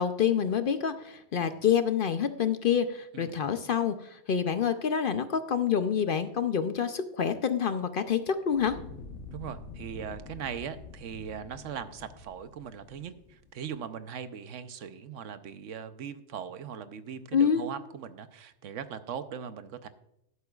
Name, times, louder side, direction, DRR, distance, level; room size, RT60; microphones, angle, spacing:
voice 1, 0.0-8.8 17.3-17.7, left 7 dB, 55° left, 10 dB, 0.7 m, -27 dB
Fire, 8.5-13.6, left 3 dB, 80° left, 1.3 m, -47 dB
voice 2, 9.3-19.9, right 8 dB, 80° right, 11 dB, 1.1 m, -40 dB
13.0 x 11.5 x 2.3 m, 0.81 s
omnidirectional pair, 1.3 m